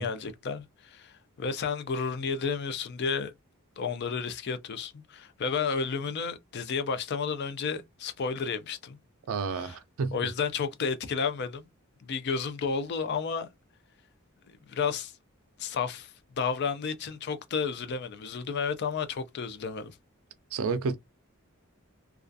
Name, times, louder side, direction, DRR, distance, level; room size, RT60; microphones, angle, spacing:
voice 1, 0.0-3.3 3.8-9.0 9.5-9.8 10.1-11.7 12.0-13.5 14.5-15.1 15.6-20.0, left 5 dB, 50° left, 0.4 m, -32 dB
voice 2, 9.3-10.3 20.5-21.0, right 4 dB, 75° right, 0.4 m, -31 dB
2.3 x 2.3 x 2.5 m
head